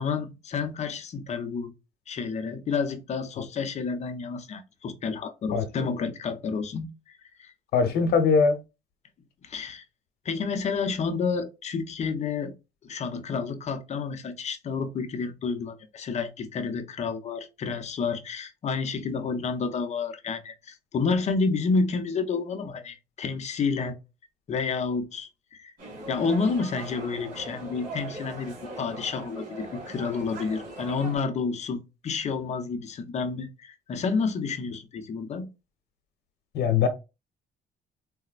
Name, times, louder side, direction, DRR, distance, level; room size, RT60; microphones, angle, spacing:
voice 1, 0.0-1.7 2.1-7.5 9.4-9.8 10.2-12.5 12.9-24.0 24.5-25.7 26.1-35.5, left 4 dB, 40° left, 0.6 m, -30 dB
voice 2, 7.7-8.6 36.5-36.9, left 5 dB, 70° left, 0.9 m, -21 dB
sound 1, 25.8-31.2, right 2 dB, 55° right, 2.0 m, -40 dB
3.9 x 2.1 x 2.4 m
cardioid pair, 110°, 17 cm